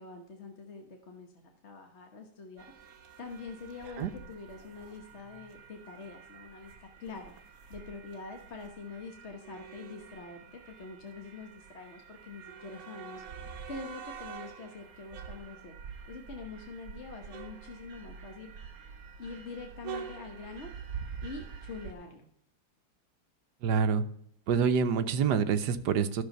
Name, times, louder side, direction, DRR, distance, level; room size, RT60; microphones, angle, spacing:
voice 1, 0.0-1.3 1.6-2.7 3.2-6.7 7.0-15.8 16.0-18.5 19.2-22.2, left 4 dB, 40° left, 3 dB, 1.2 m, -45 dB
sound 1, 2.6-21.9, right 6 dB, 55° right, 1.6 m, -46 dB
voice 2, 23.6-24.0 24.5-26.2, right 6 dB, 70° right, 11 dB, 1.3 m, -26 dB
11.5 x 6.8 x 5.2 m, 0.67 s
omnidirectional pair, 2.0 m